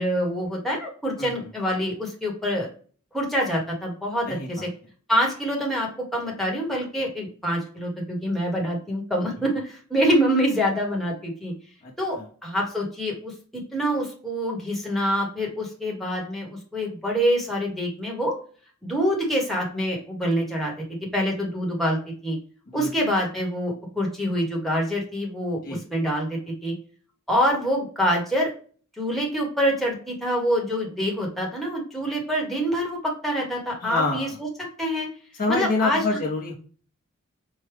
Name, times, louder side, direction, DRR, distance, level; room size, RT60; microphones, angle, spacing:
voice 1, 0.0-2.7 3.1-4.3 5.1-11.5 12.0-13.3 13.7-18.3 18.8-20.8 21.1-22.4 22.7-25.6 25.9-26.7 27.3-28.5 29.0-34.3 34.8-35.1 35.5-36.0, equal, ahead, -3 dB, 1.0 m, -25 dB
voice 2, 4.3-4.7 11.8-12.3 22.7-22.9 25.6-25.8 33.8-34.4 35.4-36.5, left 3 dB, 40° left, -2 dB, 0.7 m, -27 dB
4.6 x 2.1 x 3.2 m, 0.42 s
head